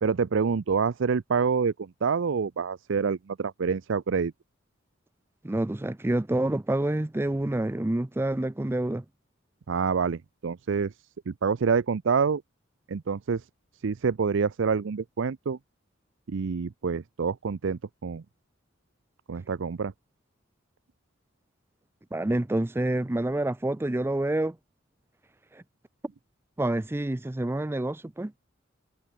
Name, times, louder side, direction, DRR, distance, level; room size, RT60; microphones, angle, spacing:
voice 1, 0.0-4.3 9.7-10.9 11.3-12.4 12.9-13.4 13.8-15.6 16.3-18.2 19.3-19.9, right 5 dB, 65° right, 0.5 m, -27 dB
voice 2, 5.4-9.0 22.1-24.6 25.5-25.6 26.6-28.3, right 1 dB, 10° right, 0.4 m, -27 dB
head